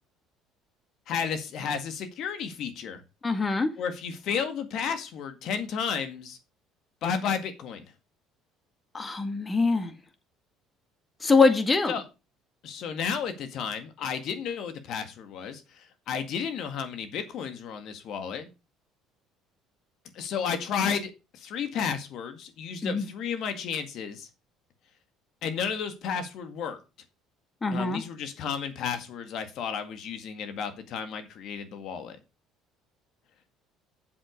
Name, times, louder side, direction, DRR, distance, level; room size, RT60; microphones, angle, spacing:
voice 1, 1.1-3.0 3.8-6.4 7.0-7.9 11.9-12.0 12.6-18.5 20.1-24.3 25.4-26.8 27.7-32.2, left 7 dB, 65° left, 1.9 m, -32 dB
voice 2, 3.2-3.7 8.9-9.9 11.2-11.9 22.8-23.1 27.6-28.0, left 4 dB, 25° left, 2.0 m, -23 dB
7.6 x 7.6 x 5.2 m
supercardioid pair, 85°, 0 cm